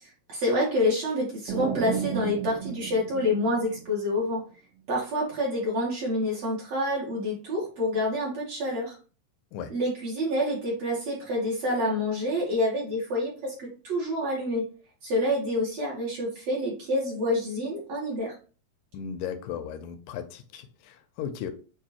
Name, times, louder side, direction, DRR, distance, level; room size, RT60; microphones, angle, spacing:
voice 1, 0.3-4.4 4.9-9.0 9.7-14.6 15.0-18.3, left 1 dB, 60° right, 2.2 m, -27 dB
sound 1, 1.5-4.3, right 9 dB, 80° right, 2.3 m, -34 dB
voice 2, 18.9-21.5, left 8 dB, 80° left, 2.1 m, -36 dB
6.9 x 2.7 x 2.9 m
omnidirectional pair, 4.0 m